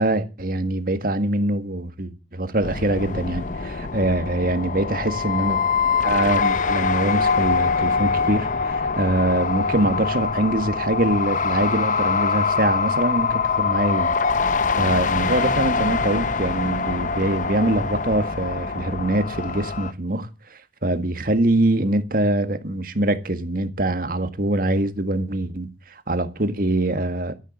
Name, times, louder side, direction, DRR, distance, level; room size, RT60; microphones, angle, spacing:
voice 1, 0.0-5.6 6.0-14.1 14.8-27.3, right 1 dB, 50° right, 1.8 m, -23 dB
sound 1, 2.6-19.9, left 5 dB, 45° left, 0.8 m, -24 dB
13.0 x 11.0 x 7.5 m
head